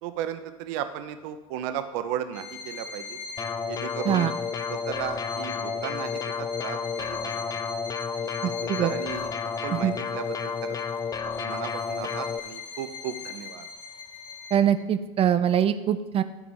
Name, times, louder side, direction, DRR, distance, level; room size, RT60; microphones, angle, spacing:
voice 1, 0.0-3.2 3.7-4.3 4.7-7.6 8.6-9.3 9.6-10.8 11.2-13.7, right 10 dB, 65° right, 10 dB, 0.8 m, -35 dB
Bowed string instrument, 2.3-14.8, left 5 dB, 80° left, 1.0 m, -41 dB
sound 1, 3.4-12.4, left 6 dB, 20° left, 0.5 m, -31 dB
voice 2, 8.4-8.9 9.7-9.9 14.5-16.2, right 9 dB, 35° right, 12 dB, 0.6 m, -23 dB
11.0 x 4.9 x 5.5 m, 1.1 s
hypercardioid pair, 90°, 17 cm